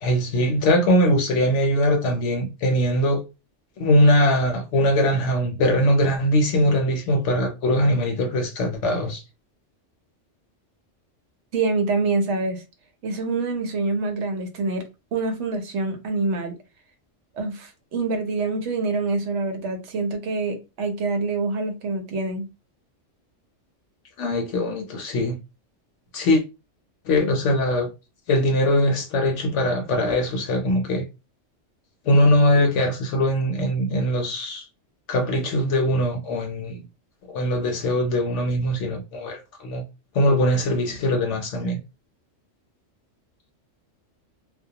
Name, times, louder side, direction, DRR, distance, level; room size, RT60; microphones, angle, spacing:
voice 1, 0.0-3.2 3.8-9.2 24.2-25.4 26.1-26.4 27.1-27.9 28.3-31.0 32.1-34.7 35.1-36.8 37.3-39.8 40.1-41.8, left 1 dB, 75° left, 0.9 m, -21 dB
voice 2, 11.5-12.6 13.0-14.8 15.1-16.6 17.4-22.5, right 3 dB, 70° right, 0.9 m, -26 dB
2.2 x 2.1 x 2.6 m
omnidirectional pair, 1.3 m